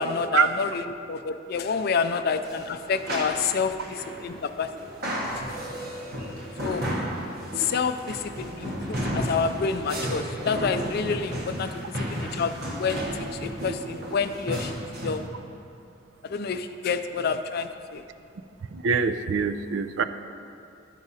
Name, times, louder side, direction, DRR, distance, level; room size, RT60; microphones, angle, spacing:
voice 1, 0.0-4.7 6.6-6.8 7.6-11.7 12.0-12.5 12.8-13.0 13.4-14.7 15.0-15.2 16.2-18.0, left 5 dB, 55° left, 9 dB, 0.4 m, -28 dB
sound 1, 2.4-15.3, equal, 55° right, 1.2 m, -33 dB
voice 2, 18.7-20.0, right 6 dB, 80° right, 10 dB, 0.4 m, -24 dB
12.5 x 4.9 x 4.2 m, 2.5 s
head